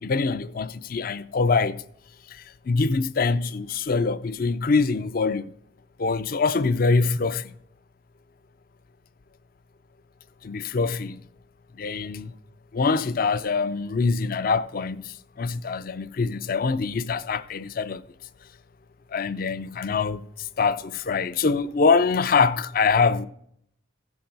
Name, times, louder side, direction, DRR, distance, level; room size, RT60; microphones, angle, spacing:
voice 1, 0.0-1.8 2.3-5.5 6.0-7.5 10.4-11.2 11.8-12.3 12.7-18.1 19.1-23.3, left 4 dB, 45° left, 0.4 m, -24 dB
15.5 x 5.8 x 3.9 m
head